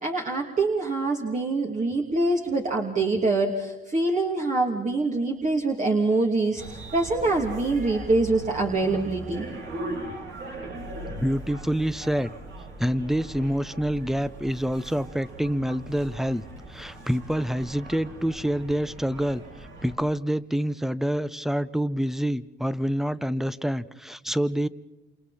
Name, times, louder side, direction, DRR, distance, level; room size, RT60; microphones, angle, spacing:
voice 1, 0.0-9.4, right 2 dB, 40° right, -1 dB, 2.8 m, -25 dB
sound 1, 6.6-20.0, right 1 dB, 75° right, 5.3 m, -39 dB
voice 2, 11.1-12.3 12.8-24.7, equal, ahead, 15 dB, 0.9 m, -27 dB
28.5 x 28.5 x 4.3 m, 1.1 s
cardioid pair, 90°, 20 cm